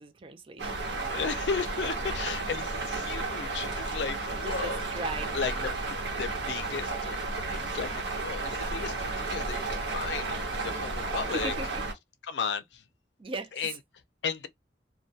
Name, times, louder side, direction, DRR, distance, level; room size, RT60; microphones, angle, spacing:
voice 1, 0.0-0.9 4.3-5.7 11.3-11.8 13.2-13.8, right 2 dB, 30° right, 0.4 m, -38 dB
sound 1, 0.6-11.9, right 3 dB, 80° right, 0.9 m, -33 dB
voice 2, 1.1-4.9 5.3-7.2 7.5-11.5 12.3-12.8 13.6-13.7 14.2-14.5, left 6 dB, 75° left, 0.5 m, -35 dB
2.2 x 2.2 x 2.6 m
head